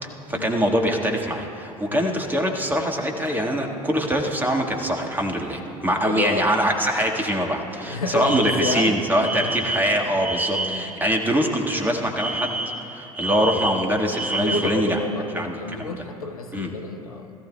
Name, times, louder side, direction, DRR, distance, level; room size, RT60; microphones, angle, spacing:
voice 1, 0.0-12.5 12.9-15.0 15.3-15.9 16.5-16.7, equal, 10° right, 1 dB, 1.5 m, -23 dB
voice 2, 6.0-6.5 7.9-9.5 10.6-10.9 13.2-13.5 14.4-17.3, left 3 dB, 80° left, 5 dB, 0.8 m, -30 dB
Alarm, 8.2-11.0 12.2-14.9, right 2 dB, 85° right, 1.4 m, -29 dB
20.5 x 14.0 x 2.2 m, 2.8 s
figure-of-eight pair, 70°, 18 cm